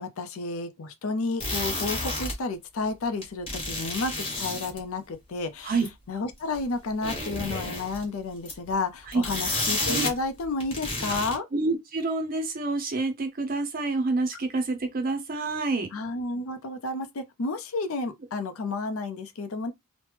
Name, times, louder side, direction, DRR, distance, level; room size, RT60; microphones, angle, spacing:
voice 1, 0.0-4.1 4.4-11.4 15.9-19.7, left 3 dB, 65° left, 0.5 m, -31 dB
sound 1, 1.4-2.3 3.2-4.8 5.8-5.9 6.5-6.6 6.9-8.0 8.4-8.7 9.1-10.2 10.4-11.4, left 1 dB, 25° left, 1.3 m, -30 dB
voice 2, 11.5-15.9, right 3 dB, 40° right, 0.5 m, -27 dB
3.0 x 2.0 x 3.2 m
head